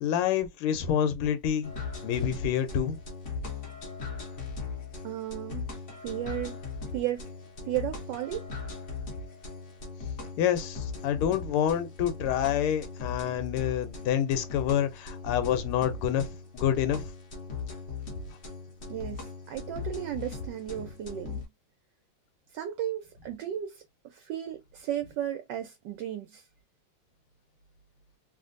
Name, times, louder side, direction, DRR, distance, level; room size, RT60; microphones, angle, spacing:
voice 1, 0.0-1.7 2.0-3.0 10.4-16.3 16.5-17.1, left 9 dB, 90° left, 1.5 m, -27 dB
sound 1, 1.6-21.4, left 4 dB, 50° left, 0.9 m, -39 dB
voice 2, 5.0-5.7 6.0-6.6 6.9-7.3 7.7-8.4 18.9-21.4 22.5-26.5, right 12 dB, 75° right, 1.0 m, -34 dB
3.3 x 2.5 x 2.5 m
omnidirectional pair, 2.3 m